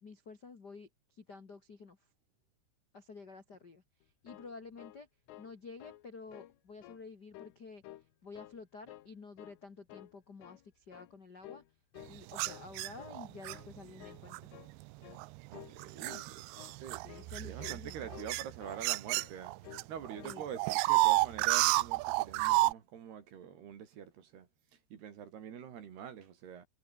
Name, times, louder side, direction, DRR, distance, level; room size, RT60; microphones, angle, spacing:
voice 1, 0.0-2.0 2.9-3.8 4.2-5.1 5.4-7.8 8.2-11.6 12.1-14.5 17.0-18.2 20.2-20.7, left 4 dB, 55° left, 1.1 m, -50 dB
sound 1, 4.0-5.5 5.8-6.1 6.3-7.0 7.3-8.1 8.4-9.1 9.4-9.6 9.9-10.7 10.9-11.2 11.4-11.7 11.9-12.7 13.0-13.2 13.5-13.7 14.0-14.3 14.5-14.8 15.0-15.2 15.5-15.8 16.0-16.3 16.5-16.8 17.1-17.3 17.6-17.8 18.1-18.9 19.1-19.3 19.6-19.9 20.2-20.4, left 15 dB, 90° left, 3.9 m, -52 dB
sound 2, 12.3-13.6 14.3-14.6 15.2-19.8 20.1-22.7, right 22 dB, 80° right, 2.6 m, -30 dB
voice 2, 15.5-17.0 17.4-19.5 19.9-24.5 24.9-26.7, right 8 dB, 60° right, 4.5 m, -46 dB
omnidirectional pair, 5.6 m